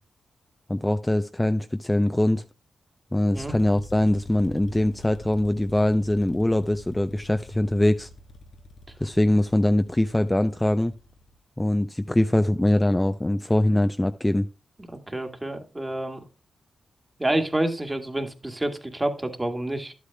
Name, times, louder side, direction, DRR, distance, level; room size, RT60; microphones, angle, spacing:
voice 1, 0.7-2.4 3.1-8.1 9.0-10.9 11.6-14.5, left 1 dB, 15° left, 8 dB, 0.6 m, -22 dB
sound 1, 3.3-11.4, left 1 dB, 75° left, 1.0 m, -46 dB
voice 2, 14.9-16.2 17.2-19.9, right 1 dB, 20° right, 6 dB, 1.8 m, -28 dB
11.5 x 8.3 x 2.2 m, 0.30 s
cardioid pair, 50°, 0 cm